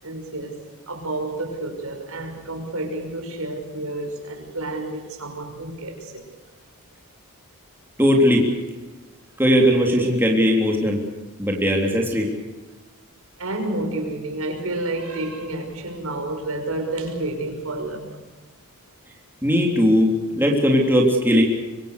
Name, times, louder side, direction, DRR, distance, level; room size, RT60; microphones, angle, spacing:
voice 1, 0.0-0.6 0.9-6.3 13.4-18.1, right 2 dB, 75° right, 4 dB, 5.8 m, -30 dB
voice 2, 8.0-8.5 9.4-11.0 11.4-12.3 19.4-21.4, equal, 10° right, 0 dB, 3.5 m, -18 dB
25.0 x 25.0 x 6.8 m, 1.2 s
head